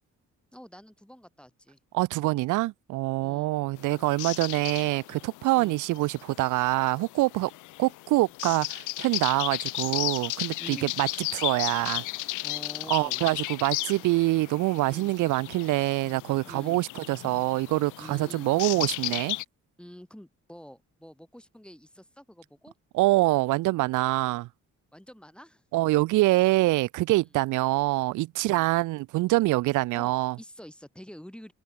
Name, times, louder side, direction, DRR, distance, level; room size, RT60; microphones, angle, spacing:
voice 1, 0.5-1.8 3.2-3.5 5.5-5.8 10.6-10.9 12.4-13.2 14.9-15.1 16.4-16.8 18.0-18.5 19.8-22.7 24.9-25.6 27.1-27.3 28.4-28.7 29.9-31.5, equal, 5° left, 2.2 m, -47 dB
voice 2, 1.9-7.5 7.8-12.0 12.9-19.4 22.9-24.5 25.7-30.4, right 19 dB, 80° right, 0.5 m, -25 dB
sound 1, 3.8-19.4, left 20 dB, 85° left, 0.5 m, -35 dB
cardioid pair, 90°, 30 cm